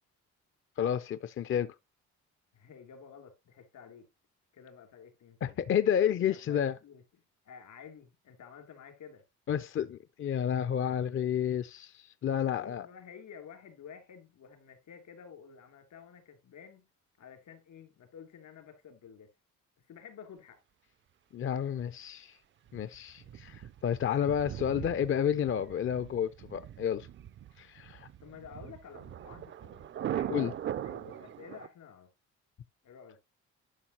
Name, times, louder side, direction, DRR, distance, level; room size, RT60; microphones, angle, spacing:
voice 1, 0.8-1.7 5.4-6.8 9.5-12.9 21.3-22.4 22.7-27.1 27.6-28.1 30.3-30.5, left 9 dB, 45° left, 0.5 m, -30 dB
voice 2, 2.5-4.1 4.5-5.6 6.3-7.0 7.4-9.2 12.2-16.9 17.2-19.3 19.9-20.6 23.2-23.3 24.1-24.3 28.2-29.9 30.1-30.6 30.8-32.1 32.8-33.2, left 7 dB, 75° left, 2.8 m, -51 dB
Thunder, 22.7-31.7, right 10 dB, 40° right, 0.4 m, -41 dB
11.5 x 5.8 x 2.8 m
cardioid pair, 90°, 30 cm